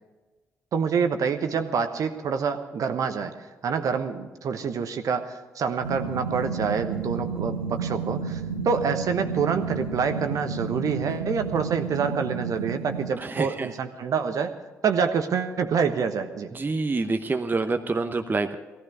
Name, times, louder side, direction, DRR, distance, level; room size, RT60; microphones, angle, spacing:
voice 1, 0.7-3.3 3.6-14.5 14.8-16.5, right 6 dB, 50° right, 8 dB, 1.1 m, -27 dB
sound 1, 5.8-13.1, right 5 dB, 85° right, 0.8 m, -31 dB
voice 2, 13.2-13.7 16.5-18.5, right 3 dB, 25° right, 7 dB, 0.9 m, -27 dB
17.0 x 14.5 x 4.8 m, 1.2 s
figure-of-eight pair, 40°, 7 cm